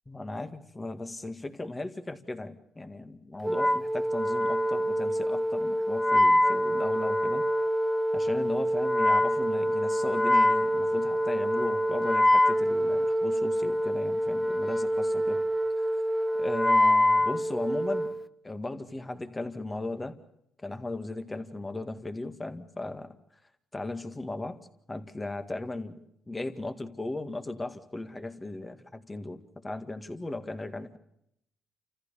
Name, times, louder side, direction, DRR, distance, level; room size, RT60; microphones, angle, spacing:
voice 1, 0.1-7.5 8.1-15.4 15.8-15.9 16.3-18.1 18.4-20.2 20.6-23.2 23.7-24.6 24.9-31.0, left 2 dB, 20° left, 8 dB, 2.0 m, -37 dB
Wind instrument woodwind instrument, 3.4-18.2, equal, ahead, 0.9 m, -25 dB
29.0 x 15.0 x 6.9 m, 0.76 s
cardioid pair, 90°, 0 cm